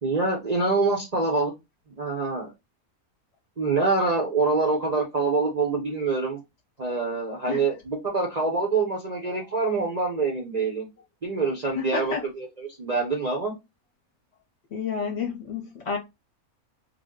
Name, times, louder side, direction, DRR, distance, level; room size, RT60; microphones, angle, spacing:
voice 1, 0.0-1.5 1.9-2.5 3.6-6.4 6.8-10.9 11.2-13.5, right 3 dB, 40° right, 0.7 m, -25 dB
voice 2, 11.7-12.2 14.7-16.0, left 6 dB, 55° left, 1.0 m, -30 dB
3.3 x 2.1 x 3.5 m
omnidirectional pair, 1.5 m